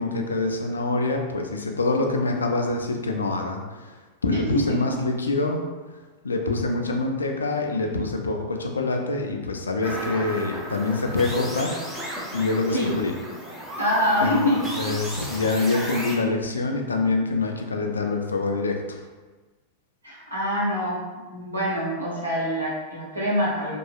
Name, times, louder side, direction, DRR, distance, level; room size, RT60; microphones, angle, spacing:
voice 1, 0.0-3.9 4.2-5.6 6.2-13.1 14.2-19.0, left 3 dB, 75° left, 3 dB, 0.3 m, -26 dB
sound 1, 9.8-16.2, equal, 5° right, 0.6 m, -34 dB
voice 2, 13.8-15.0 20.0-21.0 21.3-23.8, left 1 dB, 80° right, -6 dB, 0.9 m, -25 dB
2.8 x 2.2 x 2.3 m, 1.3 s
figure-of-eight pair, 90°, 0 cm